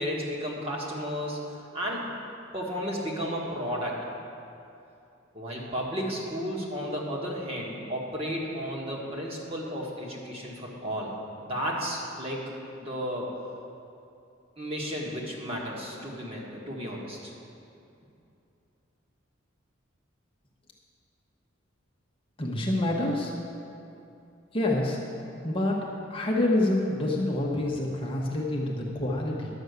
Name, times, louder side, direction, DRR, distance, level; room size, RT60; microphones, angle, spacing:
voice 1, 0.0-1.4 1.7-2.0 2.5-4.0 5.3-11.1 11.4-12.4 12.7-13.3 14.6-17.3, equal, 30° right, -3 dB, 1.7 m, -33 dB
voice 2, 22.4-23.3 24.5-25.0 25.4-25.8 26.1-29.5, left 1 dB, 25° left, -2 dB, 0.9 m, -27 dB
11.0 x 6.3 x 8.0 m, 2.7 s
head